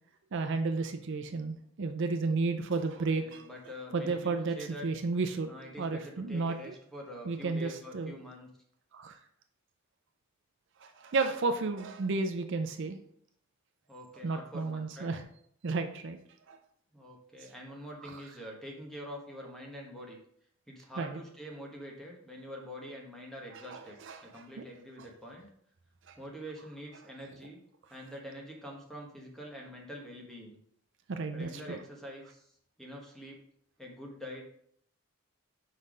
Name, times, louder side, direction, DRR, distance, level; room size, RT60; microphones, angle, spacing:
voice 1, 0.3-3.4 3.9-6.7 7.3-8.1 8.9-9.2 10.8-13.0 14.2-15.2 15.6-16.2 16.5-16.6 18.0-18.2 21.0-21.2 23.5-24.7 26.1-26.2 31.1-31.8, right 3 dB, 55° right, 7 dB, 0.5 m, -33 dB
voice 2, 3.0-4.9 5.5-8.5 13.9-15.1 16.9-20.2 20.7-25.5 26.2-27.6 27.9-30.6 31.3-32.5 32.8-33.4 33.8-34.4, equal, ahead, -1 dB, 1.1 m, -45 dB
5.4 x 4.0 x 4.9 m, 0.67 s
head